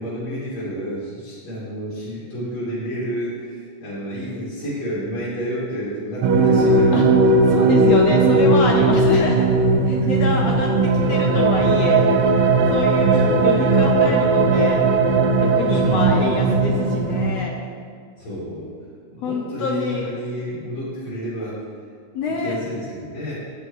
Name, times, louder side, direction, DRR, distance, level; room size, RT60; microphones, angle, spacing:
voice 1, 0.0-7.2 8.1-8.2 10.0-10.5 13.1-13.8 15.7-17.0 18.2-18.7 19.1-21.6 22.4-23.3, equal, 55° left, -11 dB, 3.4 m, -30 dB
sound 1, 6.2-17.4, right 3 dB, 75° right, 1.4 m, -17 dB
voice 2, 7.5-9.6 9.9-10.7 10.9-12.1 12.7-14.8 15.4-17.6 19.2-20.1 22.1-22.5, left 4 dB, 80° left, 1 dB, 1.5 m, -26 dB
7.9 x 7.9 x 4.8 m, 2.2 s
omnidirectional pair, 3.6 m